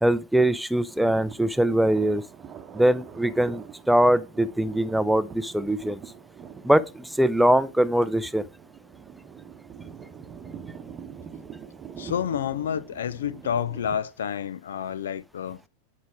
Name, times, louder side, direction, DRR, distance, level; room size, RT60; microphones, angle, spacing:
voice 1, 0.0-2.2 2.7-6.0 6.6-8.5, right 1 dB, ahead, 0.5 m, -22 dB
Thunder, 0.9-14.0, right 7 dB, 25° right, 0.9 m, -44 dB
voice 2, 12.0-15.6, left 8 dB, 65° left, 0.4 m, -29 dB
9.5 x 4.9 x 3.5 m
figure-of-eight pair, 90°, 0 cm